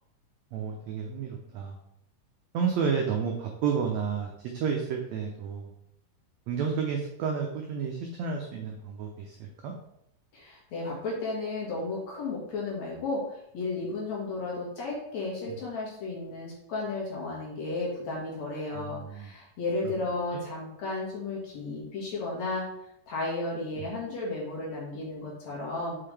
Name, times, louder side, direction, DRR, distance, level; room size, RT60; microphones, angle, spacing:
voice 1, 0.5-1.8 2.5-5.7 6.5-9.7 15.5-15.6 18.7-19.3 19.8-19.9 20.3-20.4 23.8-23.9, right 6 dB, 80° right, 1 dB, 1.5 m, -31 dB
voice 2, 10.3-22.7 23.1-26.0, left 3 dB, 55° left, -4 dB, 2.8 m, -33 dB
5.9 x 5.7 x 3.3 m, 0.77 s
omnidirectional pair, 4.0 m